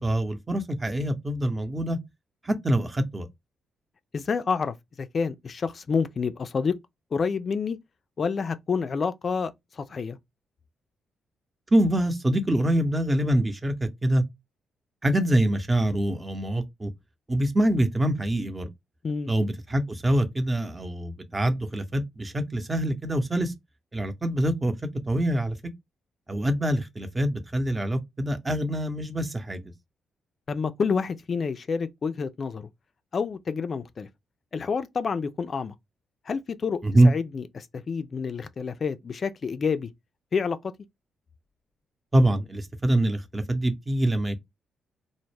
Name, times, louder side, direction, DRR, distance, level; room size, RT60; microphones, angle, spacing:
voice 1, 0.0-2.0 2.4-3.3 11.7-14.2 15.0-16.9 17.3-18.7 19.3-23.5 23.9-24.7 25.1-25.6 26.3-29.7 36.8-37.1 42.1-44.4, right 1 dB, 25° right, 0.6 m, -24 dB
voice 2, 4.1-6.7 7.1-7.8 8.2-10.2 19.0-19.3 30.5-32.7 33.1-34.1 34.5-35.7 36.3-39.9 40.3-40.6, left 5 dB, 50° left, 0.3 m, -28 dB
2.1 x 2.1 x 3.2 m
hypercardioid pair, 40°, 0 cm